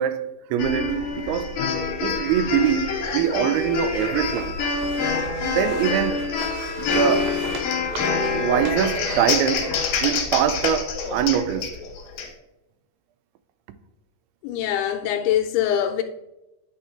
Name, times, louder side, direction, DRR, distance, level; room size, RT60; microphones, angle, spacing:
voice 1, 0.0-1.6 2.0-4.5 5.4-6.3 6.8-7.4 8.3-9.7 10.0-11.8, right 9 dB, 90° right, 2.6 m, -23 dB
sound 1, 0.6-12.3, left 5 dB, 70° left, 2.4 m, -26 dB
sound 2, 2.9-10.2, right 4 dB, 70° right, 1.9 m, -39 dB
Laughter, 8.3-10.0 11.0-12.3, left 3 dB, 15° left, 1.3 m, -38 dB
voice 2, 14.4-16.0, left 10 dB, 85° left, 2.5 m, -23 dB
9.0 x 3.7 x 4.3 m
omnidirectional pair, 4.4 m